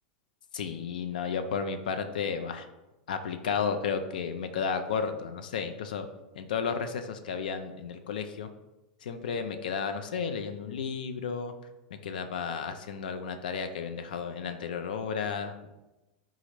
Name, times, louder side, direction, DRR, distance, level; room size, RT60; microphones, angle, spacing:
voice 1, 0.5-2.7 3.1-6.1 6.4-8.5 9.0-11.5 12.0-15.7, left 6 dB, 80° left, 8 dB, 0.3 m, -33 dB
3.9 x 2.4 x 3.0 m, 1.0 s
hypercardioid pair, 110°, 5 cm